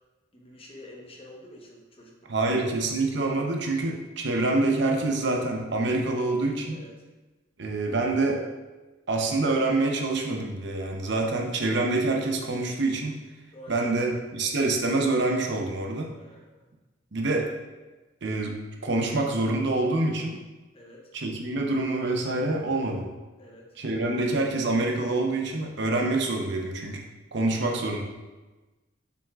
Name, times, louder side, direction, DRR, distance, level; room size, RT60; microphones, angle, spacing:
voice 1, 0.3-2.5 2.8-2.9 6.7-6.9 13.5-14.1 16.2-16.7 20.7-21.1 23.4-23.8, left 1 dB, 30° left, -1 dB, 1.0 m, -48 dB
voice 2, 2.3-6.8 7.6-8.5 9.1-13.2 13.7-16.1 17.1-17.5 18.2-20.4 21.1-23.1 23.8-27.0 27.3-28.0, right 2 dB, 60° right, 1 dB, 0.8 m, -26 dB
7.2 x 5.9 x 2.4 m, 1.2 s
head